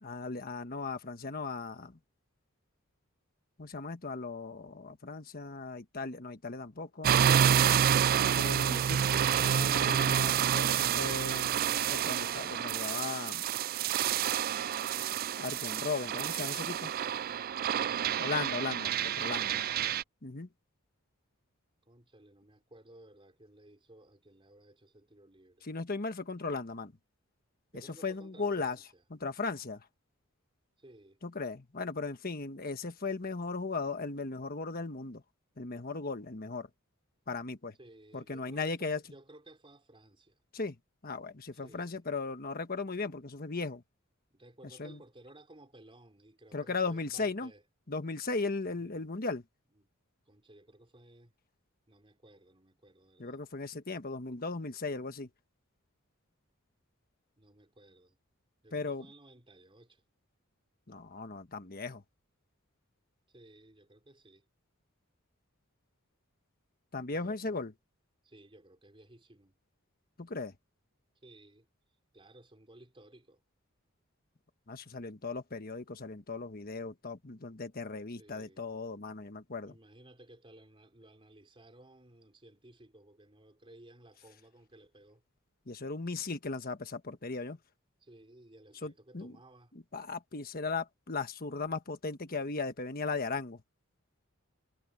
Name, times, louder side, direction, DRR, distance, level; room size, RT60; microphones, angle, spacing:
voice 1, 0.0-2.0 3.6-7.2 8.1-9.2 9.4-11.5 11.9-13.4 15.3-16.9 18.2-19.6 20.2-20.5 25.6-26.9 27.7-28.8 29.2-29.8 31.2-35.2 35.6-36.7 37.3-37.7 38.1-39.0 40.5-40.8 41.0-43.8 44.8-45.0 46.5-47.5 47.9-49.4 53.2-55.3 58.7-59.1 60.9-62.0 66.9-67.7 70.2-70.5 74.7-79.7 85.7-87.6 88.8-89.4 89.9-93.6, left 3 dB, 45° left, 1.3 m, -37 dB
sound 1, 7.0-20.0, right 9 dB, 45° right, 0.3 m, -28 dB
voice 2, 17.2-18.1 21.9-25.7 27.7-29.0 30.8-31.2 37.8-40.4 41.5-42.0 44.3-47.6 48.7-49.1 49.7-49.9 50.3-51.3 51.9-53.4 57.4-58.2 58.6-60.0 63.3-64.4 67.1-67.7 68.2-69.6 71.2-71.7 72.1-73.4 78.1-78.7 79.7-85.2 88.0-89.7, right 1 dB, 25° right, 3.5 m, -57 dB
head